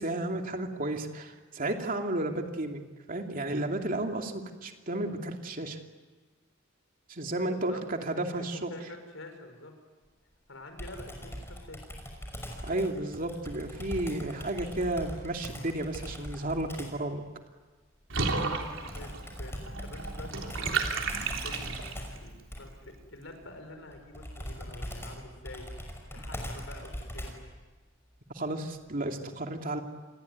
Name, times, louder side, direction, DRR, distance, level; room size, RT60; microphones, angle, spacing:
voice 1, 0.0-5.8 7.1-8.7 12.6-17.2 28.3-29.8, right 1 dB, 45° right, 3 dB, 2.7 m, -33 dB
voice 2, 7.4-9.7 10.5-11.9 18.9-20.8 21.2-27.3, left 2 dB, 75° left, 6 dB, 5.9 m, -47 dB
Computer keyboard, 10.8-17.0 18.9-27.5, equal, 10° left, 6.0 m, -41 dB
Water / Bathtub (filling or washing), 18.1-22.2, right 4 dB, 75° right, 3.5 m, -33 dB
28.5 x 21.5 x 9.6 m, 1.3 s
head